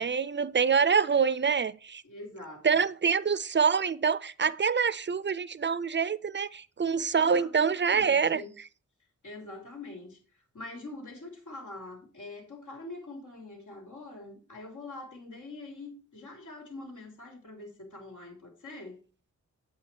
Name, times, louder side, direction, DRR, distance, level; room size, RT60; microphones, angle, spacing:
voice 1, 0.0-2.0 2.6-8.4, right 6 dB, 40° right, 0.4 m, -26 dB
voice 2, 2.0-2.8 7.1-8.5 9.2-10.2 10.5-19.0, left 2 dB, 85° left, 3.5 m, -44 dB
8.6 x 8.1 x 4.5 m
wide cardioid pair, 125°, 30 cm